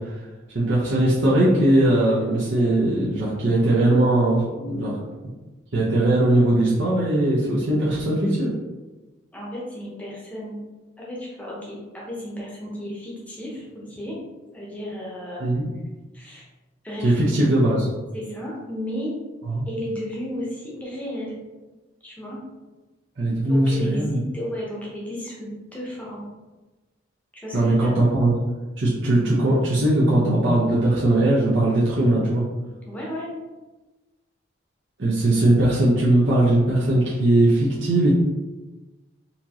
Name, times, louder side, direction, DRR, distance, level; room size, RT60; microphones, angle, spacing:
voice 1, 0.5-4.9 5.7-8.5 15.4-15.7 17.0-17.9 19.5-19.7 23.2-24.2 27.5-28.3 28.8-32.4 35.0-38.1, right 1 dB, 65° right, -8 dB, 0.8 m, -19 dB
voice 2, 4.6-5.0 9.3-10.6 11.0-14.2 14.5-15.4 16.1-16.4 16.8-17.2 17.5-17.6 18.1-19.1 19.7-21.4 22.0-22.4 23.3-26.2 27.3-27.9 32.9-33.3, equal, 5° left, -4 dB, 0.8 m, -33 dB
4.3 x 2.8 x 2.9 m, 1.2 s
head